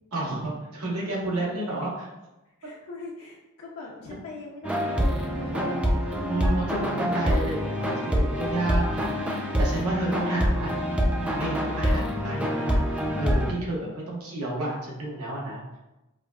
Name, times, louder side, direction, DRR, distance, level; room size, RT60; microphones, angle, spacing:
voice 1, 0.1-2.1 5.5-5.8 6.3-10.7 11.3-12.8 13.1-15.8, right 2 dB, 85° right, -3 dB, 1.0 m, -31 dB
voice 2, 1.2-1.6 2.6-5.6, left 2 dB, 80° left, -4 dB, 0.5 m, -41 dB
sound 1, 4.6-13.5, equal, 5° right, 0.3 m, -26 dB
4.9 x 2.3 x 2.3 m, 0.99 s
head